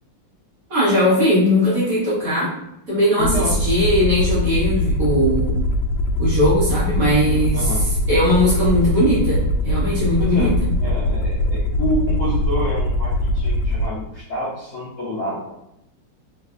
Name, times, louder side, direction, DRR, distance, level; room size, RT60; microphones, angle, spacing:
voice 1, 0.7-2.5 2.9-5.5 6.2-10.5, equal, 45° right, -9 dB, 1.4 m, -19 dB
Aircraft, 3.2-13.9, left 1 dB, 85° left, 0.9 m, -21 dB
voice 2, 3.2-3.5 7.5-7.9 10.2-10.5 10.8-15.6, equal, 60° left, -9 dB, 0.9 m, -27 dB
3.4 x 3.2 x 2.4 m, 0.81 s
omnidirectional pair, 2.4 m